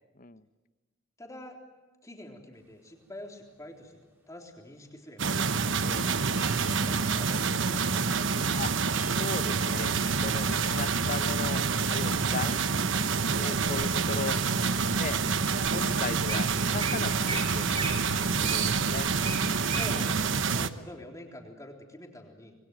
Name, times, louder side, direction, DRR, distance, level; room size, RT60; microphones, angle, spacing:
voice 1, 1.2-1.6 2.0-4.0 4.3-5.4 6.6-8.2 13.4-13.5 19.8-22.6, left 1 dB, 15° left, 2 dB, 3.6 m, -46 dB
sound 1, 2.6-2.8 3.5-4.5 5.9-6.0 6.4-11.2, right 1 dB, 10° right, 3.8 m, -50 dB
sound 2, 5.2-20.7, right 5 dB, 65° right, 1.0 m, -27 dB
voice 2, 9.2-9.9 10.2-11.6 11.9-12.6 13.3-14.4 14.9-15.2 15.7-17.9 18.2-19.1, left 4 dB, 45° left, 13 dB, 0.8 m, -37 dB
Wild animals, 10.0-10.7 11.4-11.7 12.2-12.6 13.2-14.1 14.7-14.8 15.4-15.5 15.6-15.8 16.1-16.4 16.8-16.9 17.2-17.4 17.7-19.9 20.3-20.4, right 4 dB, 30° right, 5.5 m, -36 dB
26.5 x 21.0 x 9.3 m, 1.3 s
head